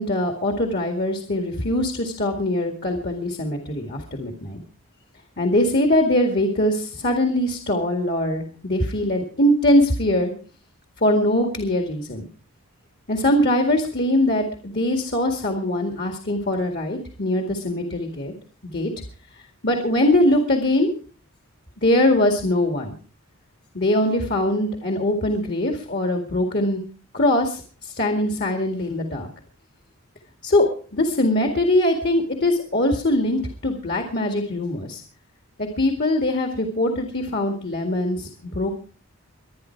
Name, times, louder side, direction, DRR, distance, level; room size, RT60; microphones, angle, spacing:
voice 1, 0.0-4.6 5.4-10.3 11.0-12.3 13.1-18.3 18.7-18.9 19.6-20.9 21.8-22.9 23.7-26.8 27.1-29.3 30.4-30.7 30.9-35.0 35.8-38.8, left 1 dB, 45° left, 4 dB, 2.1 m, -22 dB
23.5 x 9.8 x 4.6 m, 0.40 s
head